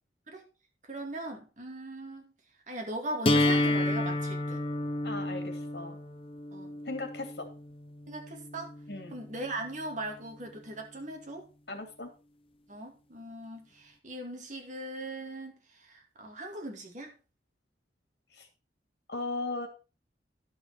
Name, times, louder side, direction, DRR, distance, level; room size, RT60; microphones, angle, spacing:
voice 1, 0.8-2.3 2.7-4.6 6.5-6.7 8.1-8.7 9.1-11.5 12.7-17.1, right 1 dB, 45° right, 2.4 m, -39 dB
sound 1, 3.3-9.2, left 1 dB, 30° left, 1.0 m, -30 dB
voice 2, 5.0-6.0 6.9-7.5 8.9-9.2 11.7-12.1 18.3-18.5 19.1-19.7, left 2 dB, 65° left, 2.5 m, -37 dB
11.0 x 6.3 x 4.6 m
head